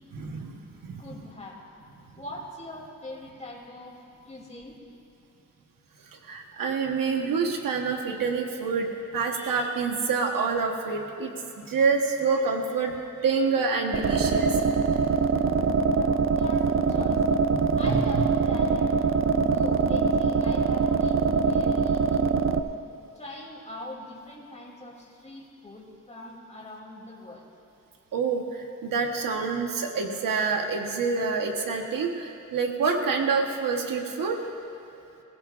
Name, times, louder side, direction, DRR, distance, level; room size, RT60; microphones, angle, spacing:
voice 1, 0.1-1.0 6.2-8.9 9.1-11.3 11.6-12.9 13.2-14.6 14.9-15.0 17.5-18.2 19.5-19.6 28.1-34.4, right 4 dB, 85° right, 3 dB, 1.3 m, -27 dB
voice 2, 1.0-1.7 2.2-4.0 4.2-4.8 15.9-17.3 17.7-22.6 23.1-27.4, left 1 dB, 20° left, -2 dB, 3.0 m, -42 dB
sound 1, 13.9-22.6, right 5 dB, 40° right, 0.5 m, -23 dB
21.0 x 16.5 x 2.5 m, 2.8 s
wide cardioid pair, 105°, 33 cm